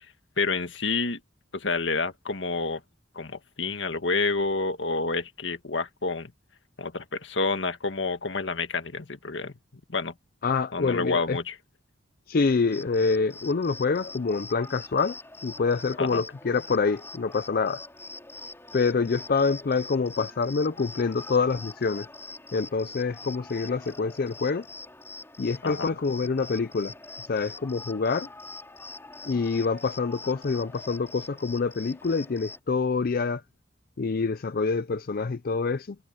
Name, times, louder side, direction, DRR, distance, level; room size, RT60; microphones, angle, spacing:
voice 1, 0.4-1.2 1.5-2.8 3.2-6.3 6.8-9.6 9.9-10.1 10.7-11.6 16.0-16.2 25.6-25.9, left 3 dB, 80° left, 1.8 m, -29 dB
voice 2, 10.4-11.4 12.3-15.2 15.4-17.8 18.7-22.1 22.5-24.7 25.4-26.9 27.2-28.3 29.3-33.4 34.0-36.0, left 4 dB, 50° left, 0.5 m, -26 dB
Cricket, 12.7-32.6, left 3 dB, 15° left, 4.0 m, -44 dB
head